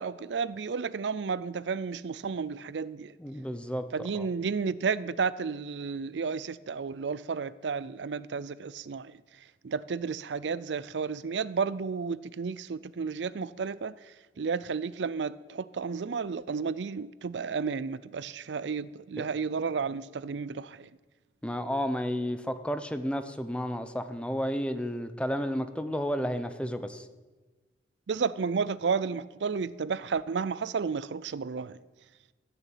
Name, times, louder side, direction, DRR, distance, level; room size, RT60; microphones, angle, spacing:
voice 1, 0.0-3.1 3.9-9.1 9.6-13.9 14.4-20.9 28.1-31.8, right 5 dB, 85° right, 0.5 m, -32 dB
voice 2, 3.2-3.9 4.1-4.3 19.2-19.3 21.4-27.1, equal, 5° left, 0.8 m, -32 dB
15.5 x 6.9 x 9.1 m
head